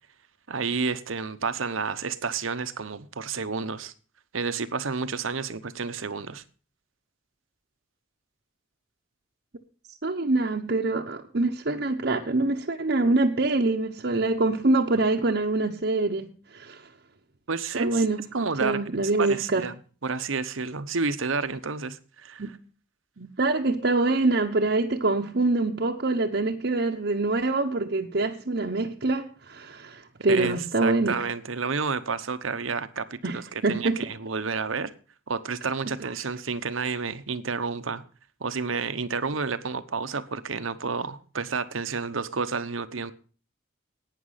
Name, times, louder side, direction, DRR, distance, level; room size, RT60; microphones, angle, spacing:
voice 1, 0.5-3.9 4.3-6.4 17.5-18.0 18.3-18.8 19.2-19.7 20.0-22.4 30.3-34.9 35.3-38.0 38.4-43.1, right 5 dB, 85° right, 0.9 m, -30 dB
voice 2, 10.0-16.8 17.7-18.3 18.6-19.6 22.4-22.5 23.2-31.2 33.2-33.4 33.6-34.0, right 2 dB, 55° right, 0.9 m, -25 dB
11.5 x 9.3 x 5.7 m
head